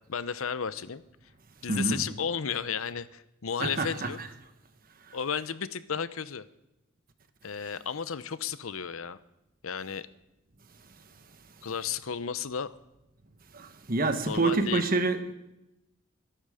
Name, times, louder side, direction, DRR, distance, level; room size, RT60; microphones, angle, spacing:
voice 1, 0.1-1.0 1.6-4.2 5.1-6.4 7.4-9.2 9.6-10.1 11.6-12.7 14.3-14.8, left 7 dB, 80° left, 0.7 m, -33 dB
voice 2, 1.6-2.1 3.6-4.3 5.1-5.2 7.6-7.8 13.5-15.3, right 3 dB, 45° right, 1.2 m, -28 dB
22.5 x 12.5 x 5.0 m
head